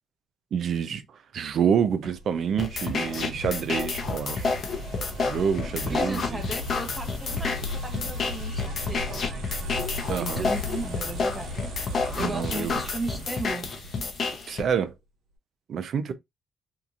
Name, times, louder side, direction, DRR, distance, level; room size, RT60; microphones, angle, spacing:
voice 1, 0.5-1.0 1.3-4.5 5.2-6.4 10.1-10.5 12.2-12.8 14.5-14.9 15.7-16.1, right 7 dB, 60° right, 0.5 m, -27 dB
sound 1, 2.0-14.7, left 1 dB, 80° right, 1.1 m, -37 dB
sound 2, 2.6-14.6, left 4 dB, 55° left, 0.7 m, -30 dB
voice 2, 5.7-9.5 10.1-11.6 12.1-13.7, right 1 dB, 5° right, 0.9 m, -36 dB
2.9 x 2.5 x 2.4 m
cardioid pair, 90°, 0 cm